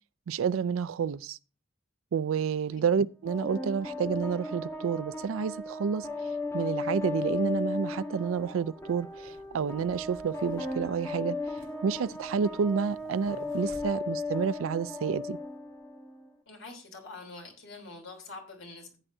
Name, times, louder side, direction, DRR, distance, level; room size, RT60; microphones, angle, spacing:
voice 1, 0.3-1.4 2.1-6.3 6.5-11.4 11.8-15.4, right 6 dB, 80° right, 0.4 m, -29 dB
sound 1, 3.3-16.3, left 3 dB, 15° left, 1.4 m, -36 dB
sound 2, 7.1-7.2 8.2-14.6, right 1 dB, 65° right, 3.4 m, -55 dB
voice 2, 16.5-19.0, left 3 dB, 75° left, 3.4 m, -45 dB
15.0 x 8.8 x 2.7 m
head